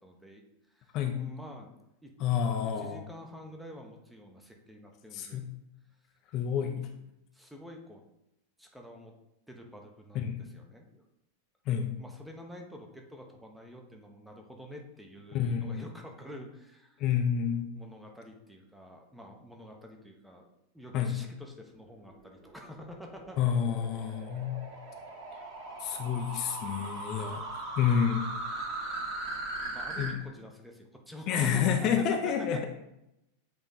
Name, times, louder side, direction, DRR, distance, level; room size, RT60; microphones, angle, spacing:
voice 1, 0.0-1.7 2.0-2.1 2.8-5.4 7.3-8.0 8.6-9.1 9.5-11.0 12.0-17.0 17.7-20.5 20.7-23.4 24.0-24.2 29.7-32.7, equal, ahead, 1 dB, 1.0 m, -48 dB
voice 2, 2.2-3.1 5.1-5.5 6.3-6.9 10.1-10.4 11.7-11.9 15.3-15.9 17.0-17.7 20.9-21.1 23.4-24.6 25.8-27.4 27.8-28.2 30.0-30.1 31.3-32.6, left 8 dB, 40° left, 3 dB, 0.7 m, -29 dB
sound 1, 22.0-30.1, right 2 dB, 35° right, 2.2 m, -39 dB
8.0 x 3.4 x 4.0 m, 0.86 s
figure-of-eight pair, 90°, 0 cm